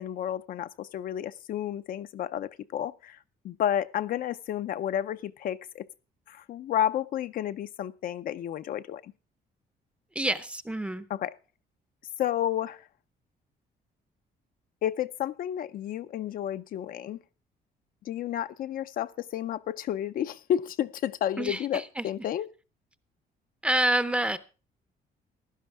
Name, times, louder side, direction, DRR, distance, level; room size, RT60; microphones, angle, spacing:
voice 1, 0.0-3.2 3.4-5.9 6.3-9.1 11.1-11.3 12.2-12.8 14.8-17.2 18.1-22.5, left 10 dB, 60° left, 0.5 m, -31 dB
voice 2, 10.1-11.1 21.4-22.1 23.6-24.4, right 1 dB, 5° right, 0.6 m, -27 dB
16.0 x 11.5 x 3.4 m
cardioid pair, 150°, 17 cm